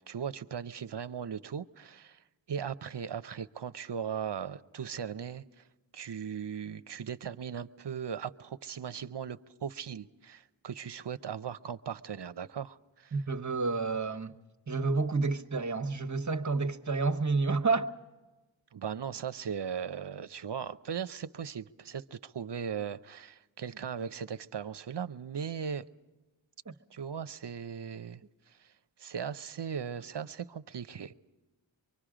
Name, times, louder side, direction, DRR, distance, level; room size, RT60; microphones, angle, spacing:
voice 1, 0.0-2.2 2.5-5.4 5.9-13.1 18.7-25.9 26.9-28.2 29.0-31.1, right 7 dB, 60° right, 0.8 m, -38 dB
voice 2, 13.1-14.3 14.7-17.9 26.7-26.8, right 3 dB, 35° right, 1.2 m, -29 dB
24.5 x 24.0 x 5.0 m
cardioid pair, 40°, 48 cm